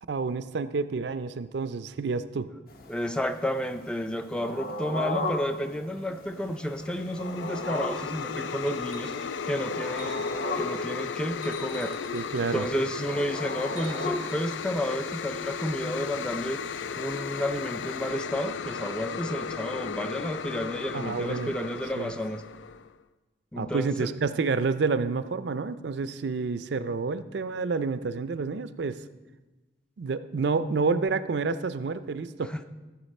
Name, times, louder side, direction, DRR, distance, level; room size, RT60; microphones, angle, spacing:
voice 1, 0.1-2.5 12.1-12.7 20.9-21.5 22.0-22.1 23.6-29.0 30.0-32.5, right 4 dB, 70° right, 13 dB, 0.4 m, -29 dB
sound 1, 2.7-18.1, left 2 dB, 55° left, 1.1 m, -38 dB
voice 2, 2.9-10.2 10.6-12.0 12.5-16.6 17.0-22.4 23.5-24.1 32.4-32.6, equal, 5° left, 9 dB, 0.4 m, -31 dB
sound 2, 6.5-22.9, left 6 dB, 90° left, 0.4 m, -35 dB
sound 3, 8.7-9.2 9.9-10.5 11.4-12.8 13.6-14.8 16.4-16.5, equal, 20° left, 1.0 m, -49 dB
14.0 x 7.2 x 4.2 m, 1.2 s
head